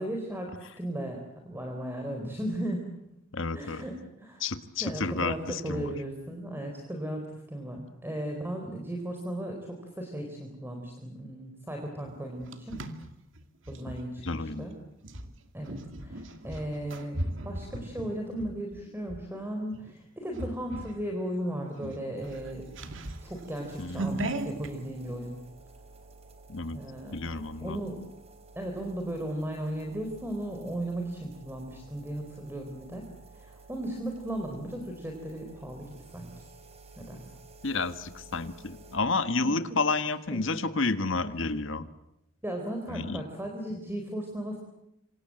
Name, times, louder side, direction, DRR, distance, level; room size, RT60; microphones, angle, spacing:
voice 1, 0.0-2.9 3.5-4.4 4.8-12.8 13.7-14.8 15.5-17.2 17.4-22.9 23.2-25.4 26.7-27.2 27.6-28.0 28.5-33.1 33.3-35.9 36.1-36.5 37.0-37.2 39.4-39.6 40.3-40.4 41.2-41.3 42.4-44.6, right 1 dB, 10° right, 2 dB, 4.3 m, -36 dB
voice 2, 3.3-3.8 4.4-5.9 14.2-14.7 23.8-24.3 26.5-26.8 27.1-27.8 37.6-41.9 42.9-43.2, left 3 dB, 70° left, 10 dB, 1.6 m, -30 dB
sound 1, 12.1-14.0 15.0-19.2 19.7-20.0 20.3-21.0 21.3-21.4 21.7-24.7, right 1 dB, 65° right, 2.5 m, -37 dB
sound 2, 22.2-39.0, right 3 dB, 30° right, 4.9 m, -52 dB
27.5 x 26.0 x 7.8 m, 0.85 s
head